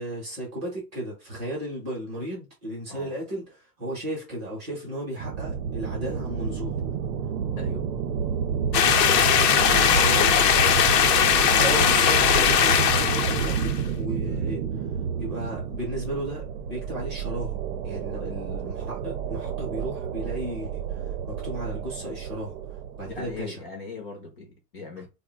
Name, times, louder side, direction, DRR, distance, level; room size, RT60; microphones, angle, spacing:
voice 1, 0.0-6.9 10.0-10.3 11.5-14.6 15.2-22.6 23.0-23.6, right 1 dB, 15° right, 0.6 m, -34 dB
sound 1, 5.2-23.4, right 7 dB, 65° right, 0.6 m, -30 dB
sound 2, 8.7-13.8, left 8 dB, 90° left, 0.7 m, -20 dB
voice 2, 9.3-10.4 23.1-25.1, left 3 dB, 35° left, 0.5 m, -40 dB
2.5 x 2.1 x 3.8 m
supercardioid pair, 175°, 48 cm